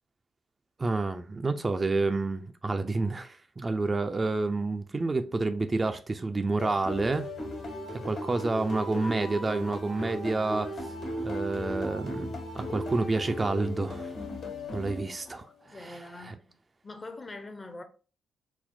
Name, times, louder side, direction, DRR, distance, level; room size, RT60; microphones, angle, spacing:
voice 1, 0.8-7.3 8.0-10.9 11.2-14.1 14.7-15.4 15.8-16.0 16.3-16.4, right 3 dB, 30° right, 0.3 m, -29 dB
sound 1, 6.6-15.5, left 1 dB, 65° left, 1.3 m, -37 dB
voice 2, 15.3-16.6 16.8-17.8, left 2 dB, 35° left, 0.6 m, -44 dB
4.2 x 2.0 x 2.5 m
hypercardioid pair, 40°, 0 cm